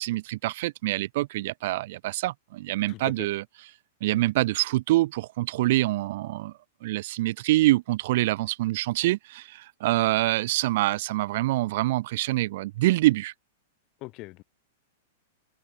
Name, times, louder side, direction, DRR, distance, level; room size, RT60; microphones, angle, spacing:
voice 1, 0.0-3.4 4.0-6.5 6.8-13.3, right 17 dB, 45° right, 1.6 m, -25 dB
voice 2, 2.9-3.3 4.1-4.2 14.0-14.4, left 21 dB, 25° left, 5.0 m, -41 dB
open air
supercardioid pair, 175°, 0 cm